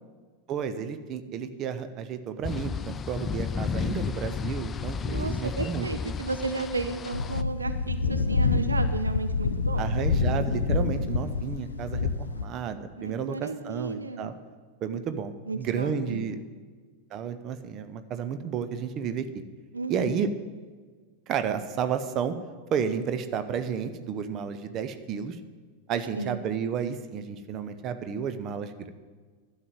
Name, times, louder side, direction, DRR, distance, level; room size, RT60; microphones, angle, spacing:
voice 1, 0.5-6.2 9.8-14.3 14.8-16.4 17.1-19.4 19.9-20.3 21.3-22.4 22.7-25.4 25.9-28.9, right 7 dB, 35° right, 10 dB, 0.8 m, -32 dB
sound 1, 2.4-7.4, left 6 dB, 20° left, 0.3 m, -32 dB
voice 2, 5.0-9.9 13.0-14.3 15.5-16.3 19.7-20.2 26.1-26.4, right 3 dB, 80° right, 9 dB, 0.7 m, -33 dB
sound 2, 7.1-12.5, left 4 dB, 70° left, 0.6 m, -27 dB
12.5 x 7.4 x 7.8 m, 1.5 s
figure-of-eight pair, 90°, 0 cm